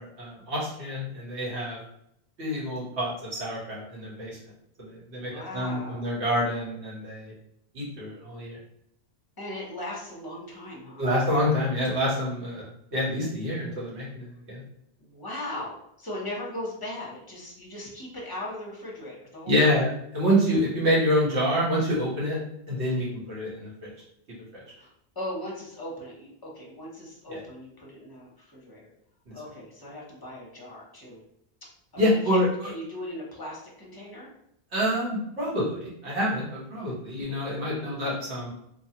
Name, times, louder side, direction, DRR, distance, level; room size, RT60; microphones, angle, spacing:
voice 1, 0.0-1.8 2.4-4.4 4.8-7.3 7.7-8.6 11.0-12.6 12.9-14.6 19.5-19.9 20.1-22.4 22.7-23.9 29.3-29.4 32.0-32.5 34.7-38.5, equal, 80° right, -7 dB, 1.5 m, -27 dB
voice 2, 5.2-6.1 9.4-11.1 15.0-19.8 24.7-28.9 29.3-31.2 31.9-34.3 37.5-38.0, left 1 dB, 25° left, -4 dB, 0.7 m, -38 dB
3.0 x 2.3 x 2.8 m, 0.76 s
omnidirectional pair, 1.1 m